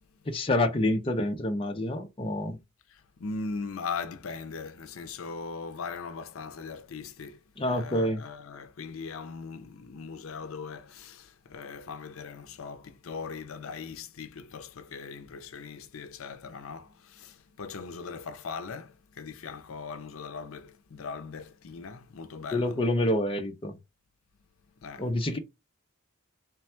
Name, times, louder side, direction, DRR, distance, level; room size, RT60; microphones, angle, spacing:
voice 1, 0.3-2.6 7.6-8.2 22.5-23.7 25.0-25.4, left 1 dB, 25° left, 0.5 m, -27 dB
voice 2, 2.9-22.8 24.8-25.1, left 5 dB, 75° left, 0.5 m, -40 dB
3.3 x 2.2 x 4.3 m
head